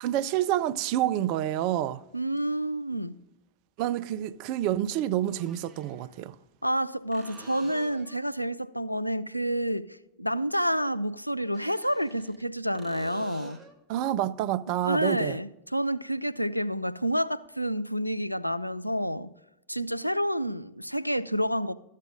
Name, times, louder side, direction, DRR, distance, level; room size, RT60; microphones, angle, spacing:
voice 1, 0.0-2.0 3.8-6.3 13.9-15.4, right 12 dB, 45° right, 0.5 m, -28 dB
voice 2, 2.1-3.1 6.6-13.6 14.8-19.3 19.7-21.7, equal, 90° left, 0.4 m, -29 dB
sound 1, 5.3-6.1 7.1-8.2 11.4-12.4 12.7-13.8 17.4-17.5, right 4 dB, 15° right, 1.5 m, -49 dB
13.5 x 7.5 x 5.0 m
figure-of-eight pair, 90°, 0 cm